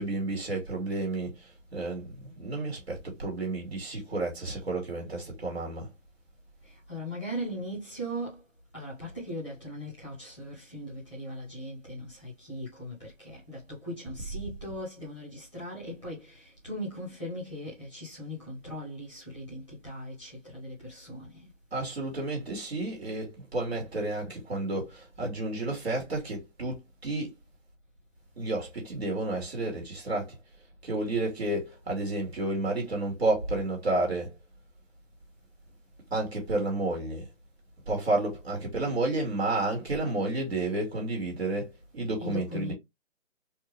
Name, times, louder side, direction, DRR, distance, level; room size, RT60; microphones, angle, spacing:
voice 1, 0.0-5.9 21.7-27.3 28.4-30.4 30.8-34.4 36.1-37.3 37.9-42.7, right 2 dB, 55° right, 2.3 m, -31 dB
voice 2, 6.6-8.4 8.7-21.5 42.2-42.7, equal, 5° right, 1.3 m, -39 dB
4.2 x 2.9 x 3.2 m
hypercardioid pair, 170°, 39 cm